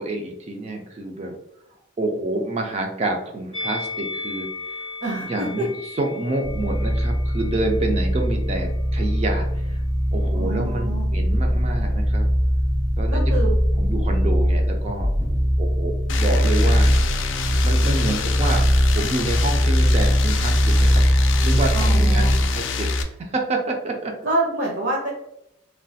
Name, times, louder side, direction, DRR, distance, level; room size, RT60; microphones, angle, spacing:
voice 1, 0.0-1.4 2.0-4.8 5.2-9.8 10.1-12.3 13.0-13.3 13.7-15.1 15.6-16.9 17.6-21.1 21.4-22.9 23.2-24.1, right 2 dB, 30° right, 2 dB, 0.3 m, -28 dB
Musical instrument, 3.5-8.8 9.0-9.2, left 3 dB, 30° left, 0.6 m, -36 dB
voice 2, 5.0-5.7 10.3-11.1 13.1-13.5 21.7-22.3 24.2-25.1, right 1 dB, 60° right, -2 dB, 0.7 m, -26 dB
sound 1, 6.4-22.6, equal, 90° right, 1.5 m, -21 dB
sound 2, 16.1-23.0, left 2 dB, 70° left, 0.3 m, -24 dB
3.1 x 2.2 x 2.6 m, 0.79 s
head